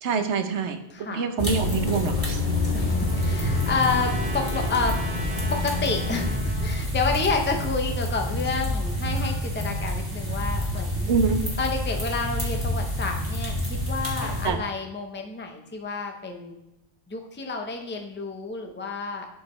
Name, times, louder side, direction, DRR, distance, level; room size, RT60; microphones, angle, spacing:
voice 1, 0.0-2.6 11.1-11.5 14.4-14.6, right 5 dB, 70° right, 8 dB, 1.0 m, -26 dB
voice 2, 0.9-1.3 2.5-5.0 5.5-11.2 11.6-16.6 17.1-19.3, left 4 dB, 10° left, 3 dB, 0.7 m, -29 dB
sound 1, 1.4-6.4, left 4 dB, 45° left, 0.9 m, -29 dB
sound 2, 1.4-14.5, equal, 15° right, 1.9 m, -28 dB
Trumpet, 2.2-6.8, right 1 dB, 40° right, 1.3 m, -40 dB
11.5 x 5.0 x 3.2 m, 0.89 s
omnidirectional pair, 1.3 m